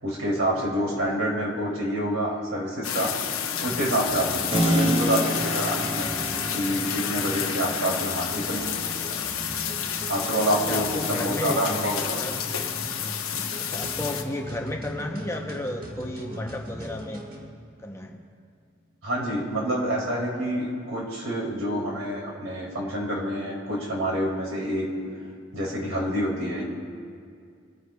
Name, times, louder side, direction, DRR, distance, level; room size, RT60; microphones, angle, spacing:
voice 1, 0.0-3.1 3.6-6.1 6.5-8.7 10.1-12.2 19.0-24.9 25.5-26.6, right 1 dB, 80° right, -4 dB, 2.9 m, -27 dB
sound 1, 2.8-14.2, left 8 dB, 85° left, 0.8 m, -30 dB
sound 2, 3.6-17.5, equal, 45° right, 1.5 m, -40 dB
Keyboard (musical), 4.5-13.1, right 1 dB, 25° right, 1.9 m, -31 dB
voice 2, 10.7-11.6 12.1-12.4 13.6-17.2 17.8-18.2, left 1 dB, 15° left, 2 dB, 0.7 m, -33 dB
25.0 x 9.6 x 2.3 m, 2.2 s
head